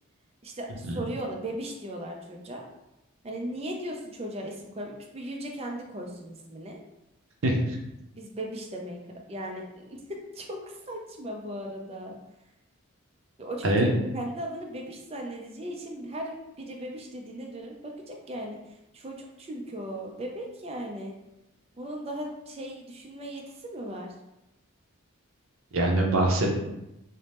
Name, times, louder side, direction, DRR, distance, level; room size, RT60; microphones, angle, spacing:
voice 1, 0.4-2.6 3.2-6.8 8.1-9.0 9.3-10.0 10.3-12.2 13.4-13.9 14.1-18.6 18.9-21.1 21.7-24.1, right 1 dB, 30° right, 1 dB, 0.4 m, -37 dB
voice 2, 7.4-7.8 13.6-13.9 25.7-26.6, right 1 dB, 70° right, 0 dB, 0.6 m, -23 dB
2.8 x 2.0 x 3.3 m, 0.91 s
head